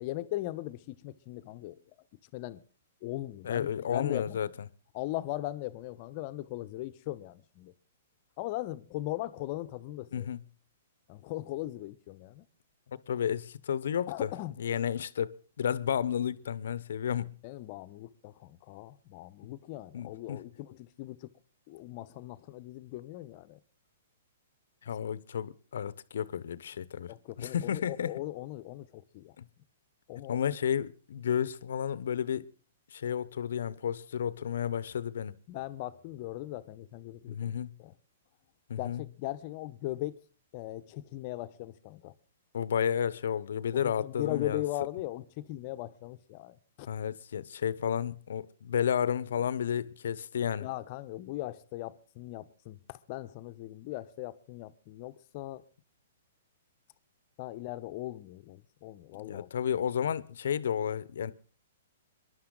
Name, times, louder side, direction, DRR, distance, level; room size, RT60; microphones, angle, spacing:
voice 1, 0.0-1.8 2.3-2.6 3.0-4.5 4.9-7.7 8.4-10.3 11.1-12.4 14.1-14.6 17.4-21.3 21.7-23.6 27.0-29.3 30.1-30.4 35.5-37.5 37.8-37.9 38.8-40.2 40.5-42.1 43.7-46.9 50.6-55.6 57.4-59.5, left 16 dB, 45° left, 0.9 m, -39 dB
voice 2, 3.4-4.5 10.1-10.4 12.9-14.3 14.6-17.3 19.9-20.4 24.8-27.1 27.4-28.1 29.4-29.5 30.3-32.5 32.9-35.3 37.3-37.7 38.7-39.0 42.5-44.6 46.9-50.7 59.2-61.3, left 8 dB, 70° left, 0.9 m, -32 dB
26.5 x 11.0 x 3.9 m
hypercardioid pair, 125°, 0 cm